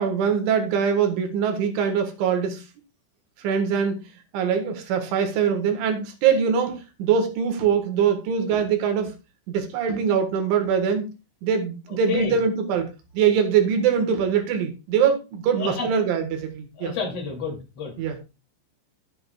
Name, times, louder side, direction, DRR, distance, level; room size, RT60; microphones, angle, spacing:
voice 1, 0.0-2.7 3.4-4.0 4.3-9.1 9.5-11.1 11.4-12.9 13.1-16.9 18.0-18.2, right 7 dB, 75° right, 5 dB, 3.7 m, -23 dB
voice 2, 11.9-12.4 15.6-15.9 16.8-17.9, left 4 dB, 35° left, 0 dB, 3.0 m, -30 dB
13.5 x 7.5 x 2.3 m, 0.28 s
omnidirectional pair, 5.7 m